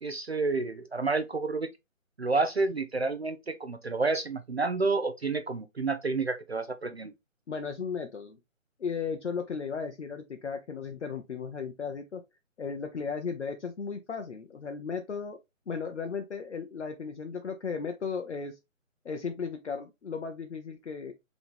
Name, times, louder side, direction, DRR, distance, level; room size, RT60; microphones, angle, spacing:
voice 1, 0.0-1.7 2.2-7.1, right 3 dB, 50° right, 0.4 m, -29 dB
voice 2, 7.5-8.4 8.8-12.2 12.6-15.4 15.7-18.6 19.0-21.1, left 5 dB, 60° left, 0.6 m, -35 dB
4.0 x 2.9 x 3.4 m
figure-of-eight pair, 175°, 40 cm